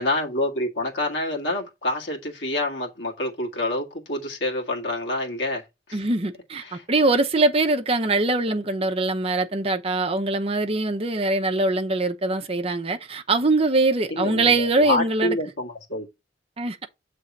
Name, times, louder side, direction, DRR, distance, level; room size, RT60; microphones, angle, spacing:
voice 1, 0.0-6.0 6.6-6.8 14.1-16.1, left 1 dB, 85° left, 1.7 m, -27 dB
voice 2, 5.9-15.4 16.6-16.8, right 2 dB, 35° right, 0.8 m, -22 dB
7.1 x 3.4 x 5.2 m
head